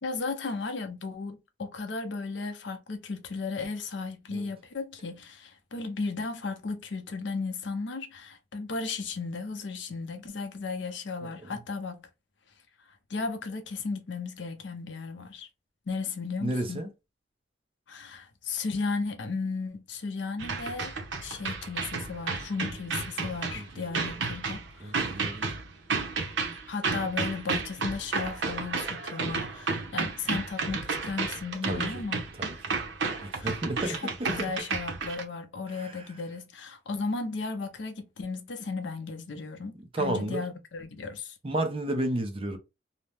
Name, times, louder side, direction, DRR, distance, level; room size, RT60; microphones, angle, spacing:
voice 1, 0.0-12.1 12.9-15.5 15.9-16.9 17.9-20.9 21.2-25.0 26.7-32.3 33.4-33.5 33.8-41.4, left 4 dB, 65° left, 0.6 m, -35 dB
voice 2, 11.2-11.6 16.4-16.9 23.5-23.6 24.8-25.5 31.7-31.8 32.4-32.5 33.2-34.5 35.7-36.0 39.9-40.4 41.4-42.6, right 1 dB, 30° right, 0.6 m, -32 dB
sound 1, 20.4-35.2, right 4 dB, 75° right, 0.7 m, -32 dB
2.8 x 2.0 x 3.2 m
head